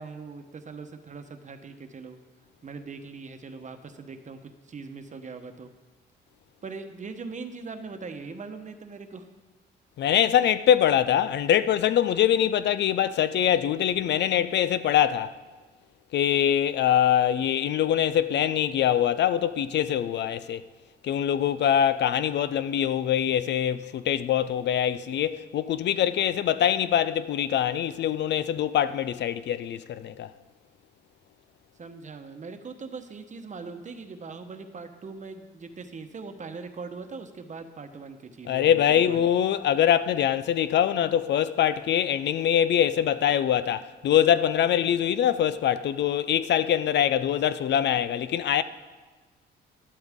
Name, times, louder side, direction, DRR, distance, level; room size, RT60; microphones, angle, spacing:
voice 1, 0.0-2.2 2.6-5.7 6.6-9.3 31.8-38.8 39.1-39.2, right 4 dB, 40° right, 1.1 m, -41 dB
voice 2, 10.0-15.3 16.1-20.6 21.0-30.3 38.5-48.6, left 10 dB, 60° left, 0.5 m, -23 dB
12.0 x 11.5 x 3.6 m
cardioid pair, 90°, 20 cm